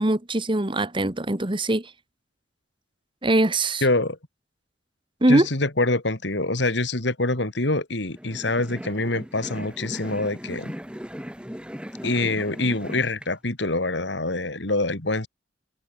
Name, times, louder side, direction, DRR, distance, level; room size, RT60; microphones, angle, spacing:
voice 1, 0.0-1.9 3.2-3.8 5.2-5.5, right 1 dB, 25° right, 1.5 m, -22 dB
voice 2, 3.8-4.2 5.3-10.7 12.0-15.3, left 2 dB, 65° left, 2.6 m, -25 dB
sound 1, 8.1-13.3, equal, 5° right, 4.3 m, -38 dB
head